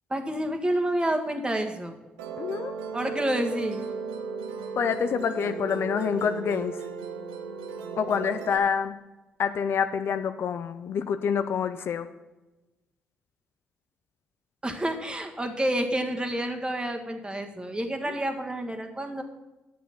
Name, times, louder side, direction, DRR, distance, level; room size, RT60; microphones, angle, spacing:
voice 1, 0.1-1.9 2.9-3.8 14.6-19.2, right 1 dB, 20° right, 4 dB, 1.6 m, -29 dB
Musical instrument, 2.2-8.6, right 5 dB, 85° right, 0.7 m, -35 dB
voice 2, 2.4-2.7 4.8-6.8 8.0-8.9 9.4-12.1 18.0-18.2, left 7 dB, 60° left, 10 dB, 0.5 m, -27 dB
9.2 x 6.9 x 5.9 m, 1.1 s
hypercardioid pair, 45°, 5 cm